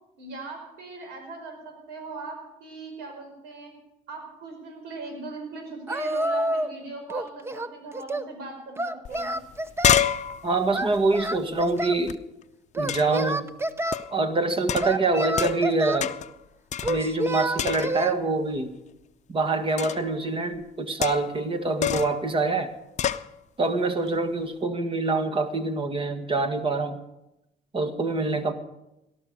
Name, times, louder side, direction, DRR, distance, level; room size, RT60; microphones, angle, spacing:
voice 1, 0.2-3.7 4.1-9.3, right 3 dB, 85° right, 3 dB, 5.0 m, -39 dB
Singing, 5.9-6.8 7.1-8.3 8.8-10.0 10.7-12.0 12.7-14.0 14.8-16.1 16.8-18.2, right 1 dB, 15° right, 0.8 m, -28 dB
sound 1, 9.1-9.2 9.4-12.2 12.9-13.3 13.9-14.2 14.7-15.7 16.0-16.4 16.7-17.3 17.6-18.2 19.8-20.1 21.0-21.4 21.8-22.2 23.0-23.3, left 9 dB, 45° left, 0.6 m, -28 dB
voice 2, 10.4-12.2 12.8-13.5 14.1-16.1 16.9-18.8 19.3-22.7 23.6-27.0 27.7-28.5, right 3 dB, 30° right, 9 dB, 1.8 m, -25 dB
18.0 x 12.5 x 6.6 m, 0.92 s
cardioid pair, 110°, 17 cm